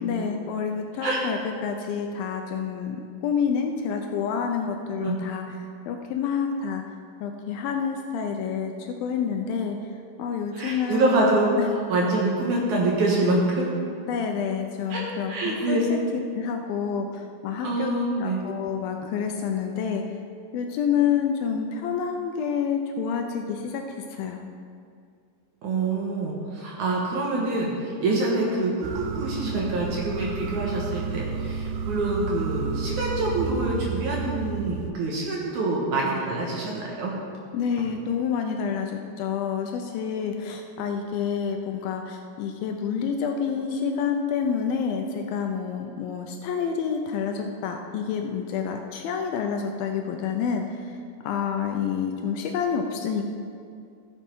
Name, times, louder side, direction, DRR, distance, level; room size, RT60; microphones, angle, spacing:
voice 1, 0.0-3.0 3.2-5.4 5.9-6.8 7.2-9.8 10.2-11.2 11.6-11.7 14.1-16.0 16.3-17.9 18.2-20.0 20.5-23.8 24.1-24.4 37.5-51.0 51.2-53.3, left 7 dB, 80° left, 4 dB, 2.3 m, -28 dB
voice 2, 10.5-13.7 14.9-15.9 17.6-18.4 25.6-37.1, right 2 dB, 60° right, -3 dB, 2.3 m, -26 dB
sound 1, 28.8-34.9, right 6 dB, 85° right, 2.0 m, -31 dB
14.5 x 7.2 x 4.6 m, 2.3 s
omnidirectional pair, 4.5 m